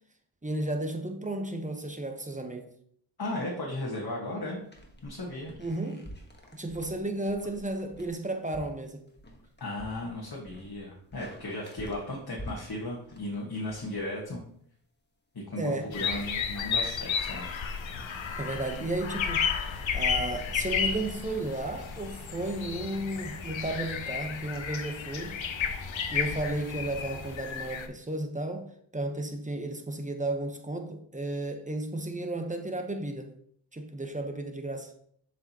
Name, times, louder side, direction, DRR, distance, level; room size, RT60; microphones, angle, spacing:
voice 1, 0.4-2.7 5.6-6.1 6.5-9.1 15.6-15.9 18.4-25.4 26.1-33.3 33.7-34.9, right 2 dB, 15° right, 1.1 m, -33 dB
voice 2, 3.2-4.6 5.0-5.6 9.6-14.4 15.3-17.5, left 1 dB, 50° left, 1.6 m, -36 dB
sound 1, 4.7-14.5, equal, 20° left, 1.5 m, -49 dB
sound 2, 15.9-27.9, left 6 dB, 75° left, 0.8 m, -33 dB
sound 3, 17.8-27.3, equal, 90° right, 2.6 m, -48 dB
7.1 x 5.0 x 3.0 m
cardioid pair, 50°, 46 cm